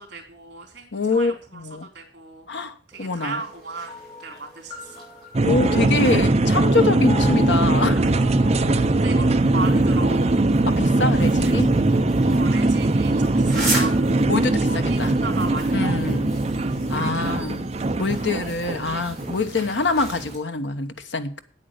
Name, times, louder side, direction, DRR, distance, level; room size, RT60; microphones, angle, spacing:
voice 1, 0.0-1.6 1.9-2.5 2.9-5.0 8.4-10.4 11.4-11.5 12.2-14.2 14.7-16.0 16.9-17.4, right 3 dB, 65° right, 3.3 m, -36 dB
voice 2, 0.9-1.9 2.5-3.4 5.4-8.1 10.7-11.7 14.3-15.2 15.7-16.3 16.9-17.7 18.0-21.4, left 3 dB, 75° left, 1.1 m, -25 dB
sound 1, 2.9-20.4, right 1 dB, ahead, 5.9 m, -38 dB
sound 2, 3.9-12.7, left 3 dB, 20° left, 4.1 m, -42 dB
sound 3, 5.3-20.3, right 2 dB, 35° right, 0.6 m, -21 dB
9.1 x 8.6 x 6.4 m
head